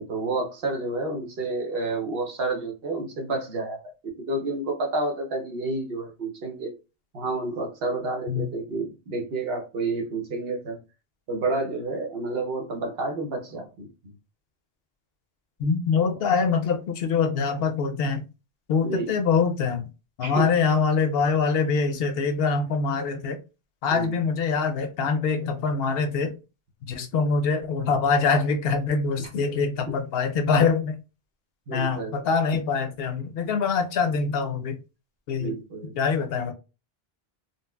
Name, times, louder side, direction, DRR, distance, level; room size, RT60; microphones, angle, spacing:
voice 1, 0.0-3.8 4.2-6.7 7.1-10.8 11.3-13.9 15.9-16.0 18.8-19.1 20.2-20.5 23.9-24.3 29.2-29.3 29.9-30.0 31.7-32.2 35.4-35.9, right 2 dB, 70° right, 1.0 m, -30 dB
voice 2, 15.6-18.2 18.7-19.9 20.2-23.4 23.8-26.3 26.9-31.0 31.7-34.8 35.3-35.6 36.0-36.5, left 5 dB, 70° left, 0.7 m, -24 dB
3.9 x 2.0 x 2.2 m
omnidirectional pair, 1.0 m